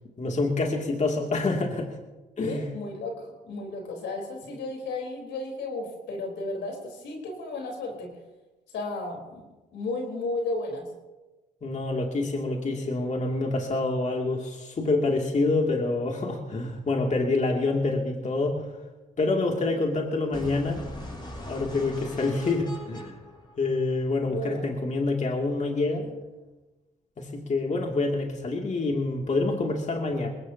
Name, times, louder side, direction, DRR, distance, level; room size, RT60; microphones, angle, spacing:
voice 1, 0.2-2.0 2.4-2.6 11.6-18.7 19.2-20.8 21.5-23.2 23.6-26.1 27.2-30.3, left 3 dB, 40° left, 0 dB, 2.5 m, -27 dB
voice 2, 2.4-8.1 8.7-9.4 9.7-10.9 19.6-19.8 24.2-24.7, left 2 dB, 80° left, 1 dB, 3.9 m, -33 dB
sound 1, 20.3-24.3, left 1 dB, 25° left, 6.8 m, -41 dB
22.0 x 18.5 x 2.8 m, 1.2 s
supercardioid pair, 65°, 18 cm